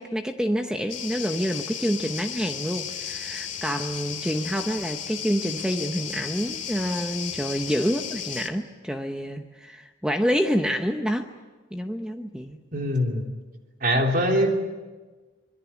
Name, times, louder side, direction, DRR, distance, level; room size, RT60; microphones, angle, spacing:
voice 1, 0.0-11.3 11.7-12.6, equal, 5° right, 5 dB, 0.9 m, -27 dB
sound 1, 0.9-8.5, left 8 dB, 40° left, 2.2 m, -34 dB
voice 2, 12.7-13.2 13.8-14.5, equal, 50° right, 2 dB, 3.6 m, -22 dB
25.5 x 22.5 x 8.5 m, 1.3 s
head